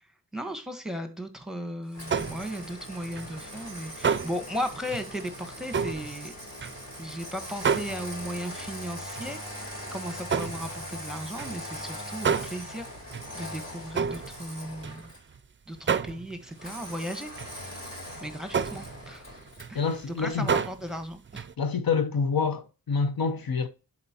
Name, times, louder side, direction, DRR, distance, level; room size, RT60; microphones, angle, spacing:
voice 1, 0.3-6.3 7.0-12.8 13.3-15.1 15.7-17.3 18.2-19.2 19.7-19.9 20.2-21.5, equal, ahead, 1.2 m, -36 dB
Engine starting, 1.9-15.3 16.6-19.8, equal, 45° left, 4.0 m, -41 dB
sound 1, 2.1-2.7 3.0-7.2 7.5-8.7 9.1-9.4 9.7-15.4 15.8-16.6 16.8-17.0 17.4-17.6 18.0-18.2 18.5-21.0 21.2-21.5, right 6 dB, 35° right, 0.4 m, -31 dB
voice 2, 19.7-20.5 21.6-23.7, left 5 dB, 80° left, 0.8 m, -27 dB
11.0 x 4.2 x 2.9 m
wide cardioid pair, 70°, 36 cm